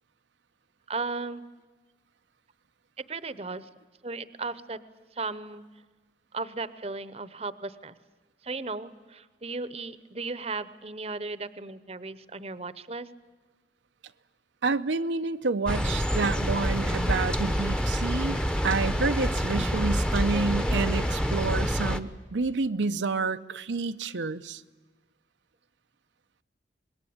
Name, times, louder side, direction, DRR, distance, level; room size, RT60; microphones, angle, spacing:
voice 1, 0.9-1.4 3.1-3.7 4.0-4.8 5.1-5.6 6.3-7.9 8.4-13.1, right 3 dB, 35° right, 0.8 m, -36 dB
voice 2, 14.6-24.6, right 4 dB, 90° right, 0.7 m, -29 dB
sound 1, 15.6-22.0, equal, 5° left, 0.9 m, -27 dB
25.5 x 21.0 x 8.7 m
head